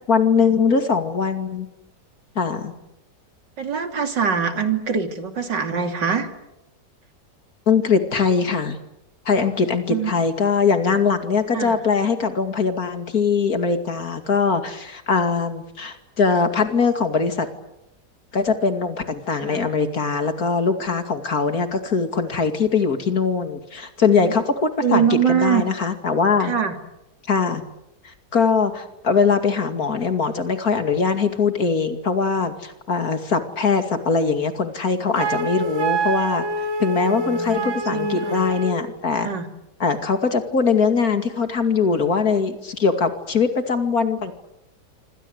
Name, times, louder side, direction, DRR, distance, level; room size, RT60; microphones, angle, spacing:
voice 1, 0.1-1.7 2.4-2.7 7.7-8.8 9.3-17.5 18.3-26.5 27.3-27.6 28.0-36.4 36.8-39.3 39.8-44.3, left 5 dB, 55° left, 8 dB, 2.8 m, -21 dB
voice 2, 3.6-6.3 9.9-10.1 11.5-11.8 19.4-19.6 24.2-24.3 24.8-25.6 26.4-26.7 37.0-38.4 39.2-39.5, right 7 dB, 85° right, 6 dB, 3.5 m, -23 dB
Wind instrument woodwind instrument, 35.2-38.9, right 2 dB, 45° right, 2.0 m, -26 dB
27.0 x 26.0 x 8.0 m, 0.89 s
omnidirectional pair, 1.9 m